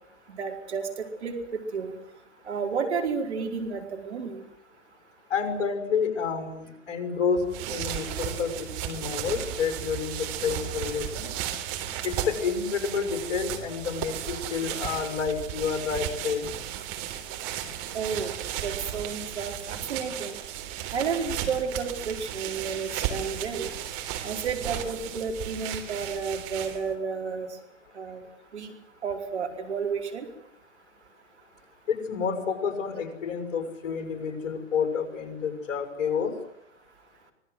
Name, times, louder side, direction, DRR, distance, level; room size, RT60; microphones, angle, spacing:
voice 1, 0.3-0.9 1.2-1.9 2.5-4.4 17.9-18.3 18.6-20.3 20.9-23.7 24.2-27.6 27.9-28.2 28.5-28.7 29.0-30.3, right 5 dB, 60° right, 3 dB, 4.8 m, -31 dB
voice 2, 5.3-11.3 12.0-16.5 31.9-36.3, left 6 dB, 45° left, 7 dB, 6.0 m, -29 dB
sound 1, 7.4-26.9, right 11 dB, 35° right, 3.8 m, -35 dB
25.5 x 20.0 x 8.0 m, 0.78 s
figure-of-eight pair, 110°, 37 cm